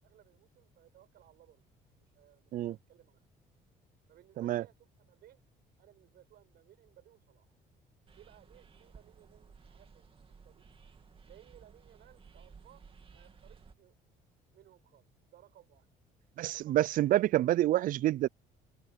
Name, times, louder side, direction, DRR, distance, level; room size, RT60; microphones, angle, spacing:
voice 1, 0.0-1.6 2.0-3.2 4.1-5.5 5.8-7.6 8.1-10.6 11.2-13.9 14.5-15.9 16.5-17.2, right 13 dB, 70° right, 6.7 m, -61 dB
sound 1, 8.1-13.7, right 5 dB, 30° right, 2.6 m, -57 dB
voice 2, 16.4-18.3, right 14 dB, 55° right, 0.4 m, -27 dB
cardioid pair, 110°, 17 cm